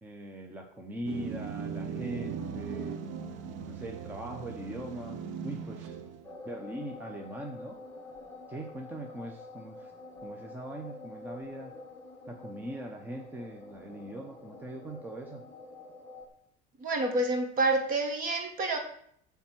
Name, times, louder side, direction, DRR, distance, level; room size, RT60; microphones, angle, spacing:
voice 1, 0.0-3.0 3.6-6.0 6.4-7.8 8.5-9.9 10.2-11.7 12.3-15.4, right 1 dB, 10° right, 2 dB, 0.6 m, -41 dB
sound 1, 1.1-6.3, right 6 dB, 75° right, 0.8 m, -38 dB
sound 2, 6.2-16.3, left 2 dB, 10° left, 1.1 m, -47 dB
voice 2, 16.8-18.8, right 2 dB, 45° right, 4 dB, 1.5 m, -28 dB
8.6 x 3.5 x 6.1 m, 0.68 s
cardioid pair, 155°, 20 cm